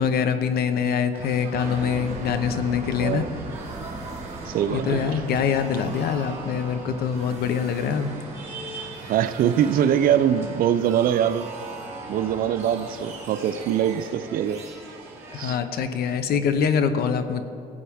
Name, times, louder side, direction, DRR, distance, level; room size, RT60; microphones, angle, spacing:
voice 1, 0.0-3.2 4.7-8.1 15.3-17.4, left 7 dB, 65° left, 10 dB, 0.8 m, -24 dB
sound 1, 1.1-15.6, right 2 dB, 15° right, 2.8 m, -43 dB
sound 2, 1.5-16.2, right 3 dB, 40° right, 2.0 m, -39 dB
voice 2, 3.0-3.3 4.5-5.2 9.0-11.5 12.1-14.6 15.3-15.6, right 9 dB, 60° right, 13 dB, 0.5 m, -23 dB
17.0 x 8.5 x 3.5 m, 2.6 s
cardioid pair, 110°, 17 cm